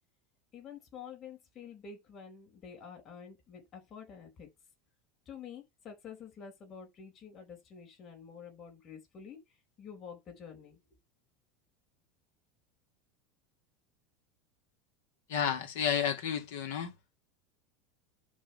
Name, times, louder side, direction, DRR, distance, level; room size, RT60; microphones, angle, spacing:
voice 1, 0.5-4.5 5.3-9.4 9.8-10.8, left 7 dB, 35° left, 4.6 m, -48 dB
voice 2, 15.3-16.9, left 8 dB, 65° left, 2.2 m, -31 dB
11.0 x 3.9 x 5.8 m
figure-of-eight pair, 80°, 0 cm